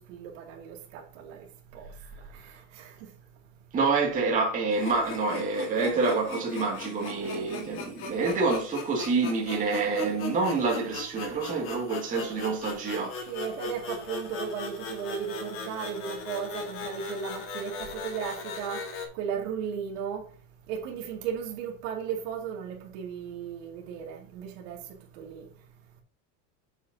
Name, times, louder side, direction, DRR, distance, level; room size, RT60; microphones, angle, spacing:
voice 1, 0.0-1.5 1.7-1.9 2.7-2.9 13.3-18.8 19.1-20.2 20.7-24.8 25.2-25.5, right 7 dB, 85° right, 2.5 m, -35 dB
voice 2, 3.7-13.2, right 4 dB, 20° right, 2.3 m, -27 dB
sound 1, 4.7-19.1, left 4 dB, 35° left, 1.7 m, -39 dB
8.3 x 7.2 x 2.8 m
cardioid pair, 170°, 37 cm